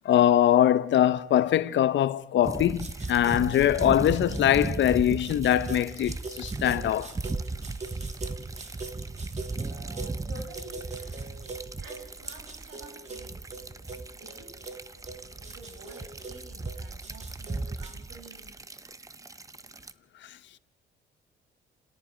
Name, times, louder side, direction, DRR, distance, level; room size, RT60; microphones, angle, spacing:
voice 1, 0.0-7.1, left 11 dB, 65° left, 0.8 m, -22 dB
sound 1, 2.4-19.9, right 3 dB, 15° right, 0.7 m, -36 dB
sound 2, 2.8-18.0, right 3 dB, 35° right, 2.4 m, -44 dB
voice 2, 9.7-10.9 11.8-13.5 14.2-14.6 15.4-18.5, right 2 dB, 85° right, 5.3 m, -49 dB
29.5 x 17.5 x 5.1 m
cardioid pair, 90°, 20 cm